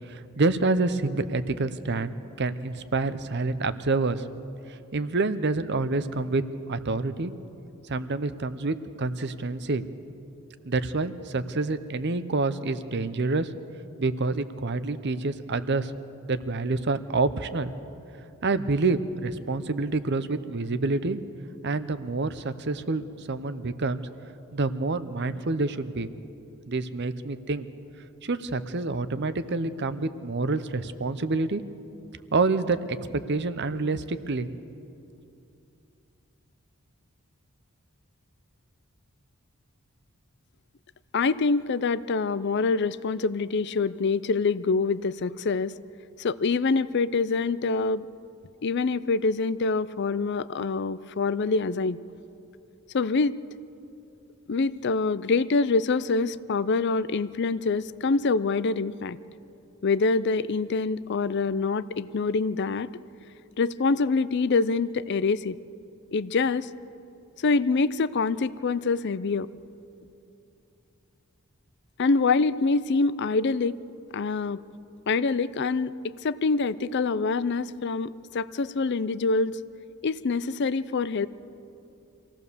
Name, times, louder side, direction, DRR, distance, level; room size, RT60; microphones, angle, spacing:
voice 1, 0.1-4.2 4.7-6.4 6.7-7.3 7.9-9.8 10.6-13.5 14.0-15.9 16.3-17.7 18.4-21.2 21.6-24.0 24.5-26.1 26.7-27.7 28.2-31.6 32.3-34.5, right 3 dB, 50° right, 13 dB, 0.8 m, -27 dB
voice 2, 41.1-45.7 46.2-48.1 48.6-52.0 52.9-53.4 54.5-59.2 59.8-62.9 63.6-65.6 66.1-66.7 67.4-69.5 72.0-73.8 74.1-74.6 75.1-79.6 80.0-81.3, left 4 dB, 50° left, 16 dB, 0.5 m, -25 dB
25.5 x 16.5 x 6.9 m, 2.7 s
head